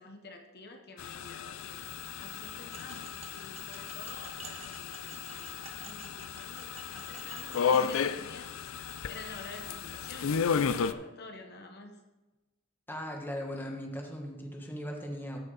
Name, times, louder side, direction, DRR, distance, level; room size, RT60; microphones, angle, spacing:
voice 1, 0.0-1.9 2.2-11.9, left 3 dB, 50° left, 4 dB, 1.1 m, -49 dB
sound 1, 1.0-10.9, left 6 dB, 75° left, 0.4 m, -34 dB
sound 2, 2.7-8.0, right 4 dB, 30° right, 1.0 m, -51 dB
voice 2, 12.9-15.4, equal, 10° left, 1 dB, 1.3 m, -38 dB
13.5 x 6.5 x 4.0 m, 1.1 s
head